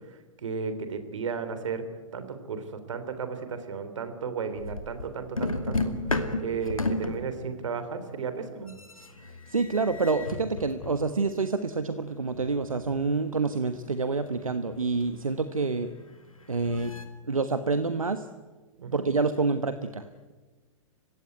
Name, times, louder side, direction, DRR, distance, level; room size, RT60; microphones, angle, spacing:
voice 1, 0.1-1.8 2.1-8.7 18.8-19.0, right 5 dB, 65° right, 9 dB, 3.7 m, -34 dB
sound 1, 4.6-5.1 5.4-8.1 8.6-11.1 12.0-17.1, left 2 dB, 85° left, 2.6 m, -34 dB
voice 2, 9.3-15.9 16.5-16.9 17.3-18.3 18.9-20.3, right 4 dB, 85° right, 11 dB, 1.3 m, -28 dB
29.5 x 16.5 x 9.4 m, 1.3 s
figure-of-eight pair, 110°, 17 cm